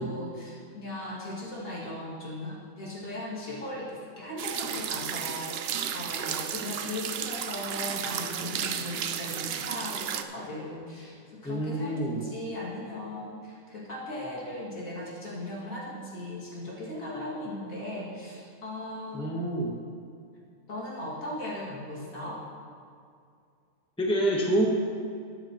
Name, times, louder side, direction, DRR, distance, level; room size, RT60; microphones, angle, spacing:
voice 1, 0.0-11.1 11.4-19.2 20.7-22.4, left 1 dB, 70° left, -6 dB, 2.8 m, -38 dB
sound 1, 4.4-10.2, right 8 dB, 65° right, 0.6 m, -33 dB
voice 2, 11.4-12.2 19.1-19.7 24.0-24.7, right 1 dB, 5° left, -1 dB, 1.0 m, -27 dB
13.5 x 9.6 x 3.0 m, 2.3 s
omnidirectional pair, 1.5 m